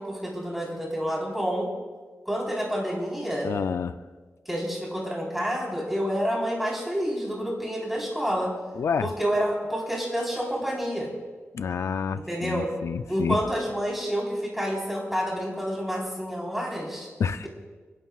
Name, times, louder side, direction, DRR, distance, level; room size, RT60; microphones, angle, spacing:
voice 1, 0.0-1.7 2.3-3.5 4.5-8.5 9.0-11.1 12.3-12.7 13.1-17.1, equal, 5° right, -3 dB, 4.0 m, -28 dB
voice 2, 3.4-4.0 8.7-9.1 11.5-13.4 17.2-17.5, left 6 dB, 85° left, 11 dB, 0.4 m, -28 dB
28.0 x 11.0 x 2.4 m, 1.4 s
wide cardioid pair, 120°, 5 cm